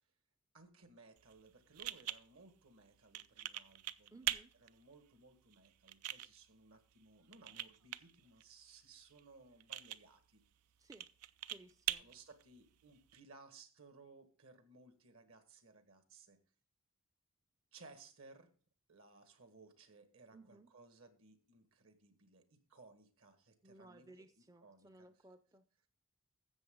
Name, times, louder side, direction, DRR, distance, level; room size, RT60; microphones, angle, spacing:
voice 1, 0.5-4.3 4.6-10.4 12.0-16.4 17.7-18.5 18.9-25.1, right 3 dB, 65° right, 9 dB, 1.7 m, -61 dB
sound 1, 1.2-13.2, right 13 dB, 85° right, 0.5 m, -46 dB
voice 2, 4.1-4.5 10.8-11.1 11.5-12.1 20.3-20.7 23.6-25.6, right 2 dB, 15° right, 11 dB, 0.4 m, -59 dB
13.5 x 7.7 x 3.8 m, 0.43 s
head